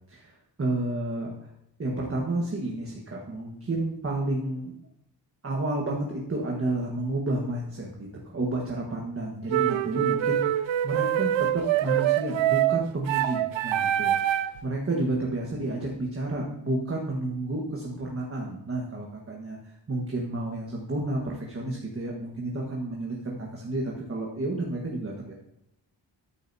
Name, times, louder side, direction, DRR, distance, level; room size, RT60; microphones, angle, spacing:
voice 1, 0.1-1.3 1.8-4.8 5.4-25.3, right 2 dB, 30° right, -2 dB, 1.4 m, -31 dB
sound 1, 9.5-14.6, right 12 dB, 85° right, 0.5 m, -25 dB
14.0 x 8.8 x 2.7 m, 0.79 s
wide cardioid pair, 145°, 45 cm